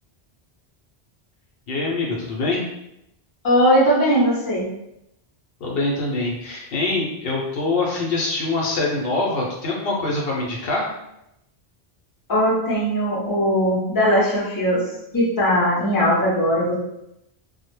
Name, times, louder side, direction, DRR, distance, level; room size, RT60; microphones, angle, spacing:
voice 1, 1.7-2.6 5.6-10.9, left 2 dB, 70° left, -2 dB, 0.7 m, -24 dB
voice 2, 3.4-4.7 12.3-14.9 15.1-16.7, equal, 25° left, -6 dB, 0.6 m, -19 dB
2.1 x 2.0 x 3.0 m, 0.84 s
omnidirectional pair, 1.1 m